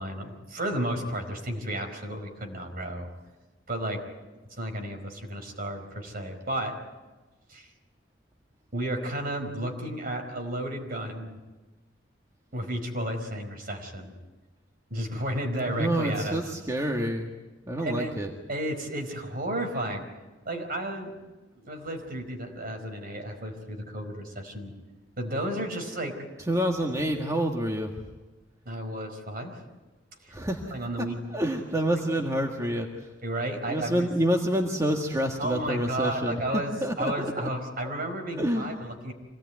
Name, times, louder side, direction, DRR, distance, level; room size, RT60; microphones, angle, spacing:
voice 1, 0.0-3.1 3.7-4.0 4.6-6.8 7.5-7.7 8.7-11.4 12.5-14.1 14.9-16.4 17.8-18.1 18.5-20.0 20.4-21.1 21.5-24.7 25.2-26.2 28.6-29.6 30.2-30.3 30.7-31.2 33.2-34.1 35.4-39.1, right 1 dB, 50° right, 4 dB, 4.7 m, -32 dB
voice 2, 15.7-17.3 17.7-18.3 26.5-27.9 30.3-30.7 31.3-33.1 33.7-36.4 36.8-37.5 38.4-38.7, right 1 dB, 15° right, 1 dB, 1.7 m, -27 dB
26.0 x 18.5 x 9.4 m, 1.2 s
head